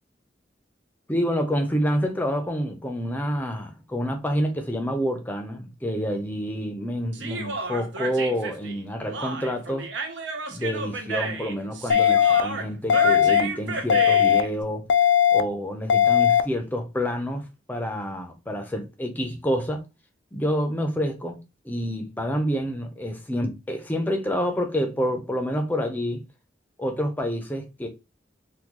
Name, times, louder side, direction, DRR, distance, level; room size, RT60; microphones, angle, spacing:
voice 1, 1.1-9.9 10.5-14.8 15.3-19.8 20.3-21.4 21.6-26.2 26.8-27.9, equal, 10° left, 0.5 m, -28 dB
Human voice, 7.1-14.5, right 4 dB, 85° right, 0.7 m, -32 dB
sound 1, 11.9-12.4 12.9-13.4 13.9-14.4 14.9-15.4 15.9-16.4, left 9 dB, 90° left, 0.3 m, -18 dB
3.6 x 2.2 x 2.9 m
head